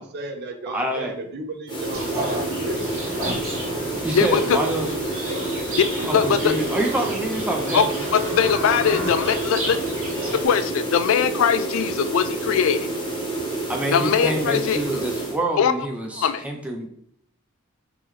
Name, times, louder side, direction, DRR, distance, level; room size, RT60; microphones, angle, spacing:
voice 1, 0.0-2.9 4.5-5.6 6.0-7.1 9.3-9.8, right 1 dB, 50° right, 6 dB, 0.6 m, -35 dB
voice 2, 0.7-1.1 4.0-4.9 6.1-7.9 13.7-16.9, right 1 dB, 5° right, 1 dB, 0.4 m, -26 dB
sound 1, 1.7-15.4, right 2 dB, 20° left, 0.9 m, -29 dB
Livestock farm animals working animals, 1.9-10.5, right 1 dB, 75° right, 1.5 m, -31 dB
voice 3, 4.1-4.6 6.1-6.5 7.7-7.9 8.1-9.8 10.4-12.9 13.9-15.0 15.6-15.7 16.1-16.4, left 7 dB, 70° left, 12 dB, 0.3 m, -21 dB
3.7 x 3.0 x 3.0 m, 0.68 s
head